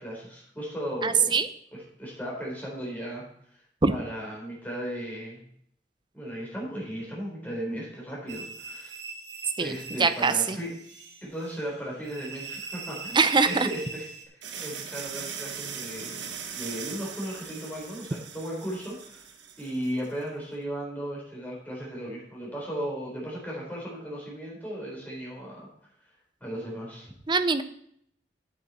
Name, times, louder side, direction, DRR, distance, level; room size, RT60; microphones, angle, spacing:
voice 1, 0.0-1.4 1.7-3.3 3.9-5.4 6.1-8.9 9.6-10.7 11.2-14.1 14.6-16.3 16.5-19.3 19.6-25.7 26.4-27.1, equal, 10° left, -4 dB, 4.1 m, -36 dB
voice 2, 1.0-1.5 3.8-3.9 9.6-9.7 10.0-10.6 13.2-13.7 27.3-27.6, right 4 dB, 25° right, 11 dB, 0.5 m, -22 dB
sound 1, 8.3-14.2, right 4 dB, 65° right, 1.5 m, -41 dB
sound 2, 14.4-20.1, right 7 dB, 85° right, 1.3 m, -40 dB
8.5 x 8.4 x 4.2 m, 0.68 s
head